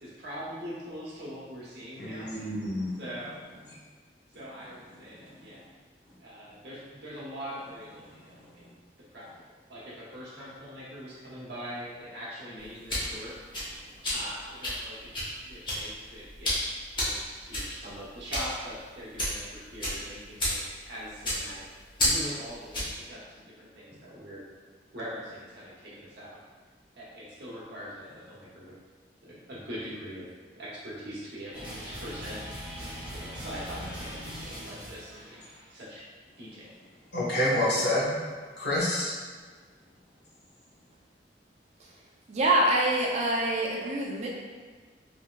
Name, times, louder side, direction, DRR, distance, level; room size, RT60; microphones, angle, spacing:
voice 1, 0.0-2.3 3.0-3.4 4.3-5.6 6.2-8.7 9.1-9.3 9.7-13.3 14.1-15.1 15.4-16.6 17.0-21.6 22.0-24.5 24.9-26.4 27.0-28.8 29.2-32.4 33.1-36.0 36.4-36.7, equal, 65° right, -7 dB, 1.0 m, -42 dB
voice 2, 2.0-3.0 5.5-5.6 14.1-14.2 37.1-38.1 38.6-39.1, left 1 dB, 60° left, -7 dB, 0.9 m, -28 dB
sound 1, 12.6-23.0, left 1 dB, 30° left, 0.9 m, -32 dB
sound 2, 31.5-35.7, equal, 10° right, 0.9 m, -40 dB
voice 3, 42.3-44.3, right 1 dB, 40° right, -3 dB, 0.4 m, -25 dB
3.4 x 2.8 x 2.2 m, 1.5 s
head